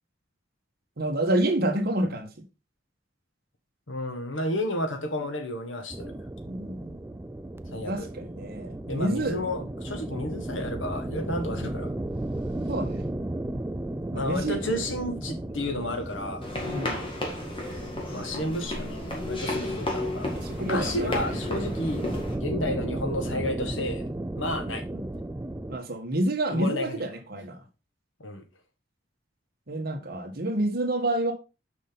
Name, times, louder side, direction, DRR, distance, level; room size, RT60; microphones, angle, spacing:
voice 1, 1.0-2.3 6.5-7.0 7.7-9.4 12.7-13.1 14.1-14.6 16.6-17.0 20.4-21.4 24.9-25.0 25.7-27.6 29.7-31.3, right 1 dB, 55° right, 1.4 m, -28 dB
voice 2, 3.9-6.2 7.7-8.1 8.9-11.9 14.1-16.5 18.1-22.1 22.4-24.1 24.4-24.8 26.5-27.0 28.2-28.4, left 1 dB, 85° left, 1.6 m, -32 dB
sound 1, 5.9-25.8, right 1 dB, 10° right, 0.3 m, -35 dB
sound 2, 11.2-13.1 15.9-17.9, equal, 30° right, 1.8 m, -52 dB
sound 3, 16.4-22.3, left 1 dB, 30° left, 1.9 m, -33 dB
6.3 x 5.5 x 3.9 m
head